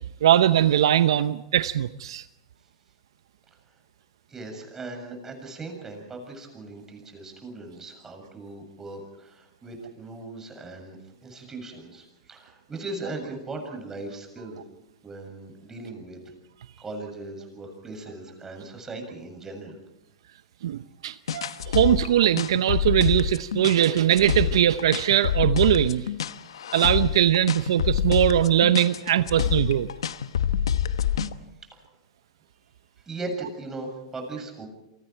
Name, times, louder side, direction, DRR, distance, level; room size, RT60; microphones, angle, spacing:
voice 1, 0.2-2.2 20.6-26.1 26.7-29.9, right 11 dB, 75° right, 13 dB, 0.8 m, -21 dB
voice 2, 4.3-14.6 15.0-16.2 16.8-19.8 31.7-31.8 33.0-34.7, right 2 dB, 15° right, 4 dB, 7.3 m, -38 dB
sound 1, 21.3-31.4, left 9 dB, 85° left, 1.1 m, -27 dB
28.5 x 24.5 x 4.6 m, 0.86 s
hypercardioid pair, 120°, 3 cm